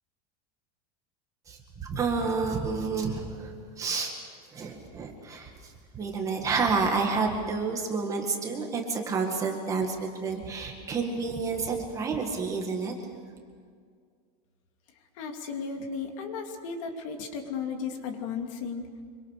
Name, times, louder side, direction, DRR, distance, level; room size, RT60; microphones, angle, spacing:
voice 1, 1.5-4.1 4.5-12.9, right 4 dB, 15° right, 2 dB, 1.9 m, -30 dB
voice 2, 15.2-18.9, left 5 dB, 55° left, 4 dB, 2.8 m, -35 dB
26.0 x 24.0 x 6.7 m, 2.1 s
supercardioid pair, 180°, 20 cm